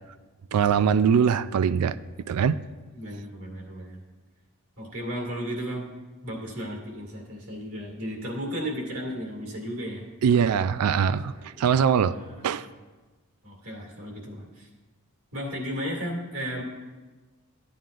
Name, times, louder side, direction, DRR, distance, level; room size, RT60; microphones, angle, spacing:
voice 1, 0.5-2.0 2.3-2.6 10.2-12.2 12.4-12.7, right 7 dB, 85° right, 15 dB, 0.4 m, -22 dB
voice 2, 3.0-4.0 4.8-5.9 6.2-10.1 11.0-11.7 12.1-12.5 13.4-14.7 15.3-16.6, equal, 70° right, 0 dB, 2.2 m, -34 dB
14.0 x 9.3 x 2.5 m, 1.3 s
head